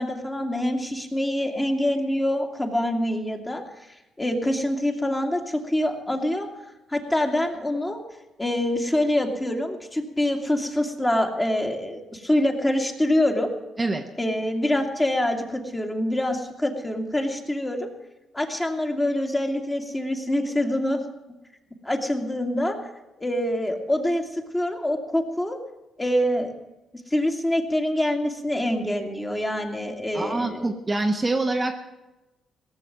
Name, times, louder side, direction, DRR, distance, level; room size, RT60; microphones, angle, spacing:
voice 1, 0.0-6.5 6.9-8.0 8.4-13.5 14.2-17.9 18.3-21.0 21.8-22.8 23.2-25.6 26.0-26.5 27.1-30.7, left 1 dB, 15° left, 3 dB, 2.4 m, -25 dB
voice 2, 30.1-31.7, right 2 dB, 20° right, 3 dB, 1.2 m, -25 dB
17.5 x 7.2 x 9.2 m, 1.0 s
cardioid pair, 90°, 0 cm